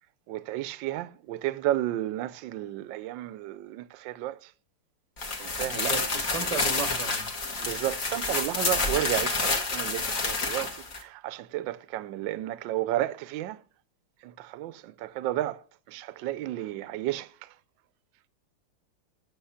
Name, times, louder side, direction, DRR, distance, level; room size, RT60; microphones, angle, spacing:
voice 1, 0.3-4.5 5.4-5.9 7.6-13.6 14.2-15.6 15.9-17.5, right 14 dB, 70° right, 1.2 m, -32 dB
sound 1, 5.2-11.0, left 3 dB, 40° left, 1.8 m, -29 dB
voice 2, 5.7-7.3, right 5 dB, 25° right, 0.8 m, -35 dB
9.1 x 6.9 x 5.7 m
omnidirectional pair, 2.4 m